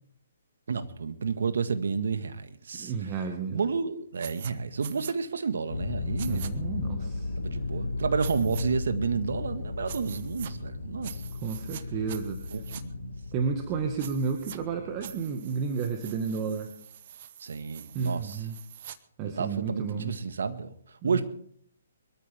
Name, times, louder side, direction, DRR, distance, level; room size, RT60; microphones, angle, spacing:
voice 1, 0.7-3.2 3.5-6.5 7.0-7.1 7.4-11.2 12.5-13.2 17.4-18.5 19.2-21.2, right 5 dB, 70° right, 1.8 m, -31 dB
voice 2, 2.7-3.6 6.3-7.3 11.4-12.4 13.3-16.7 17.9-18.6 19.2-20.2 21.0-21.2, right 5 dB, 30° right, 1.8 m, -31 dB
sound 1, 4.2-4.5 4.8-5.1 6.2-6.5 8.2-8.6 9.9-10.5 11.0-11.8 12.1-12.8 14.0-14.6 15.0-19.0, right 10 dB, 45° right, 1.1 m, -45 dB
sound 2, 5.7-15.2, left 3 dB, 70° left, 1.7 m, -35 dB
23.5 x 13.5 x 3.7 m
figure-of-eight pair, 135°, 0 cm